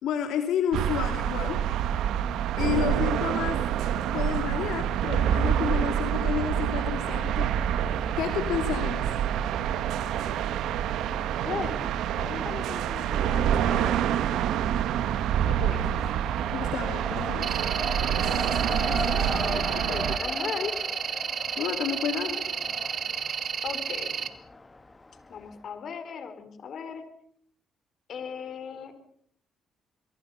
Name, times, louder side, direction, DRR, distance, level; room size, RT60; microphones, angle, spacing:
voice 1, 0.0-1.6 2.6-3.6 4.1-7.5 8.2-9.1 16.5-17.5 21.6-22.5, left 9 dB, 85° left, 5 dB, 2.8 m, -30 dB
sound 1, 0.7-20.2, right 10 dB, 85° right, 1.3 m, -27 dB
voice 2, 11.4-14.3 15.4-16.0 18.7-20.8 23.6-24.2 25.3-27.0 28.1-28.9, left 6 dB, 60° left, 10 dB, 4.3 m, -38 dB
Race car auto racing, 13.1-13.9 14.2-25.5, left 3 dB, 20° left, 2.2 m, -38 dB
sound 2, 17.4-24.3, right 7 dB, 50° right, 2.0 m, -32 dB
26.5 x 23.5 x 5.7 m, 0.67 s
cardioid pair, 90°, 0 cm